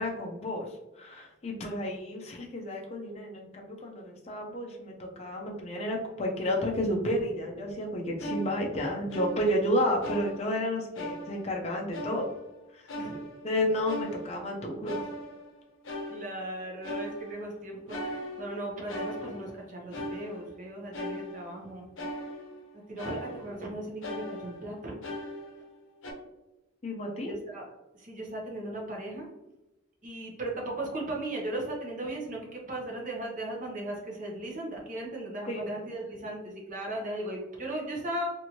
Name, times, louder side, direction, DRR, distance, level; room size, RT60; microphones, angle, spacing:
voice 1, 0.0-12.3 12.7-12.8 13.4-15.1 26.8-27.3 35.5-35.7, left 1 dB, 30° left, 0 dB, 0.4 m, -31 dB
sound 1, 8.2-9.7 10.0-10.7 11.0-11.6 11.9-12.5 12.9-14.6 14.9-15.6 15.8-16.6 16.8-17.5 17.9-19.6 19.9-20.6 20.9-21.7 22.0-22.7 23.0-23.7 24.0-25.8 26.0-26.1, equal, 75° left, 0.6 m, -39 dB
voice 2, 16.1-21.9 22.9-25.2 27.2-27.7 27.9-29.3 30.0-38.3, right 1 dB, 40° right, -1 dB, 0.8 m, -37 dB
2.9 x 2.5 x 2.9 m, 0.97 s
head